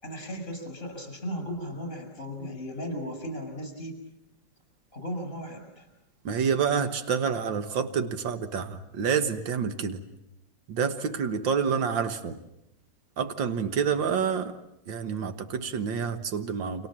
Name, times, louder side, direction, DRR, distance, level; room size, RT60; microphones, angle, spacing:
voice 1, 0.0-4.0 4.9-5.9, equal, 30° left, 5 dB, 6.6 m, -36 dB
voice 2, 6.3-10.0 10.7-12.4 13.2-14.6 14.9-16.9, right 6 dB, 90° right, 9 dB, 2.0 m, -28 dB
30.0 x 26.0 x 7.5 m, 0.83 s
omnidirectional pair, 2.0 m